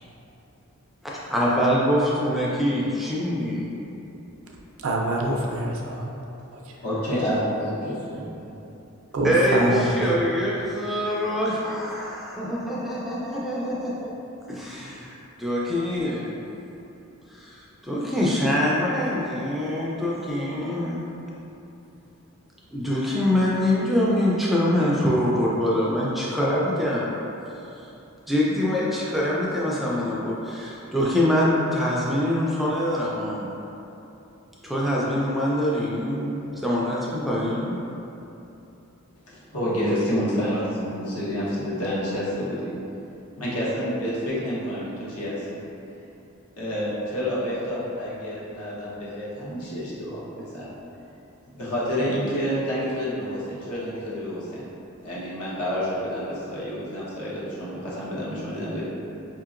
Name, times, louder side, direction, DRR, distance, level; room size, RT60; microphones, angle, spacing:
voice 1, 1.0-3.7 9.2-14.1 14.5-16.3 17.3-21.0 22.7-27.1 27.8-27.9 28.3-33.5 34.6-37.8, left 1 dB, ahead, -6 dB, 0.3 m, -24 dB
voice 2, 4.8-6.1 6.7-6.8 9.1-10.0, right 2 dB, 65° right, -1 dB, 0.5 m, -25 dB
voice 3, 6.8-7.7 8.1-8.2 39.3-42.7 43.4-45.6 46.6-50.7 51.6-54.6 55.0-58.8, equal, 80° left, -7 dB, 1.0 m, -28 dB
4.9 x 2.8 x 2.4 m, 2.9 s
head